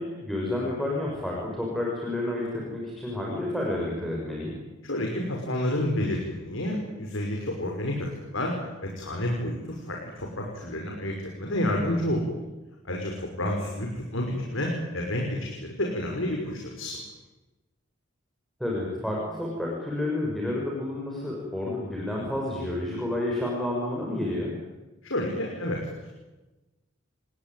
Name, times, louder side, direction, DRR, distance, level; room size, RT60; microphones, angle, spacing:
voice 1, 0.0-4.6 18.6-24.5, left 1 dB, ahead, -3 dB, 6.7 m, -30 dB
voice 2, 4.8-12.2 12.8-17.0 25.0-26.1, left 1 dB, 85° left, 1 dB, 5.7 m, -30 dB
29.5 x 21.0 x 9.1 m, 1.1 s
head